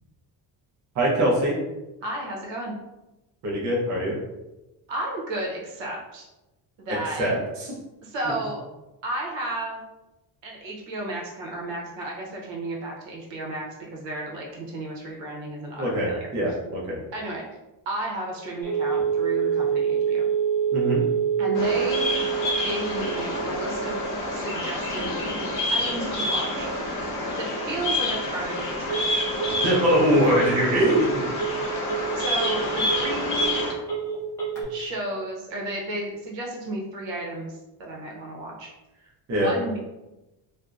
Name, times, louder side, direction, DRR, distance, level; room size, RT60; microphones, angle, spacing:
voice 1, 0.9-1.6 3.4-4.1 7.2-7.7 15.8-17.0 20.7-21.0 29.6-31.2 39.3-39.5, right 1 dB, 40° right, -4 dB, 0.7 m, -22 dB
voice 2, 2.0-2.7 4.9-6.2 6.8-7.4 8.0-8.6 9.0-9.8 10.4-16.2 17.1-17.4 17.9-20.3 21.4-22.2 22.6-24.0 24.3-25.2 25.7-26.9 27.4-29.2 32.1-33.7 34.7-38.7 39.3-39.8, right 1 dB, 85° right, -2 dB, 0.8 m, -33 dB
Telephone, 18.6-34.6, right 7 dB, 5° left, 0.6 m, -28 dB
Bird vocalization bird call bird song, 21.5-33.7, left 1 dB, 50° left, 0.7 m, -28 dB
2.6 x 2.0 x 2.3 m, 0.99 s
cardioid pair, 175°, 43 cm